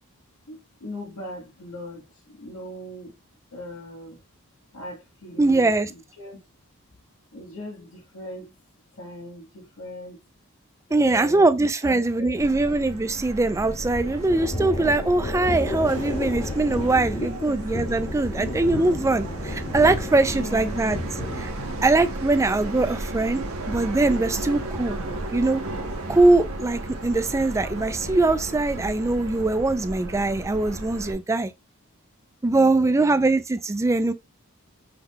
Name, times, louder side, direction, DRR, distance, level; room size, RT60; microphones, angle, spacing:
voice 1, 0.5-3.2 3.5-4.2 4.7-6.4 7.3-8.5 9.0-10.2 10.9-12.8 17.1-17.6 18.3-18.7 20.3-20.9 32.5-33.3, left 1 dB, 85° left, 1.2 m, -39 dB
voice 2, 5.4-5.9 10.9-21.0 21.4-21.5 21.8-25.0 25.3-25.6 26.1-31.5 32.4-34.1, right 2 dB, 15° right, 0.3 m, -22 dB
Subway metro underground, 12.4-31.1, right 2 dB, 75° right, 0.8 m, -34 dB
Thunder, 13.9-29.5, left 2 dB, 30° left, 0.8 m, -35 dB
5.6 x 2.3 x 3.5 m
head